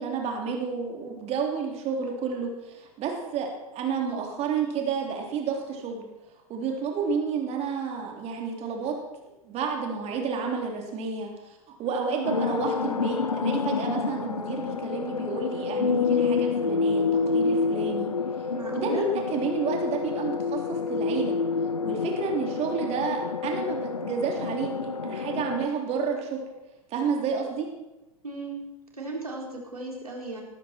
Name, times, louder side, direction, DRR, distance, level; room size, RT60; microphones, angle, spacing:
voice 1, 0.0-6.1 6.5-9.0 9.4-18.1 18.7-21.4 21.8-26.4 26.9-27.7, right 5 dB, 35° right, 2 dB, 3.4 m, -30 dB
voice 2, 11.9-12.6 18.5-19.1 28.2-28.6 29.0-30.4, right 2 dB, 85° right, 0 dB, 4.3 m, -36 dB
sound 1, 12.2-25.7, left 5 dB, 85° left, 0.7 m, -28 dB
20.0 x 14.0 x 4.5 m, 0.99 s
figure-of-eight pair, 95°, 19 cm